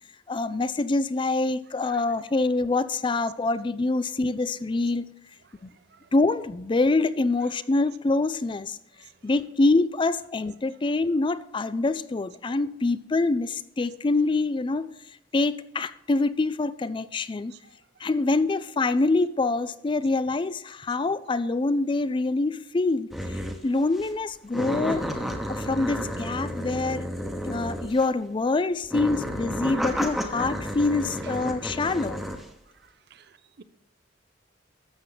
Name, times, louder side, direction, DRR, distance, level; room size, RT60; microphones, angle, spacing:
voice 1, 0.3-5.1 6.1-8.8 9.2-14.9 15.3-17.5 18.0-25.1 25.5-27.1 27.4-32.2, left 3 dB, 25° left, 15 dB, 0.4 m, -25 dB
sound 1, 23.1-23.6 24.0-24.1 24.5-28.2 28.8-32.5, equal, ahead, 1.0 m, -31 dB
voice 2, 33.1-33.6, right 7 dB, 60° right, 14 dB, 0.6 m, -52 dB
12.5 x 7.5 x 3.9 m, 0.80 s
head